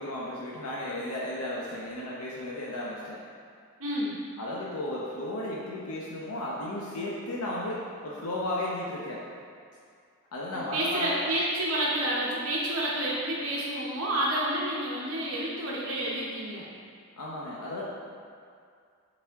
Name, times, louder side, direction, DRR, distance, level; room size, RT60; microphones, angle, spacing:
voice 1, 0.0-3.2 4.4-9.2 10.3-11.1 17.2-17.8, left 1 dB, 90° left, -5 dB, 0.8 m, -34 dB
voice 2, 3.8-4.2 10.5-16.7, right 1 dB, 70° right, -5 dB, 1.0 m, -29 dB
7.1 x 4.1 x 3.5 m, 2.3 s
head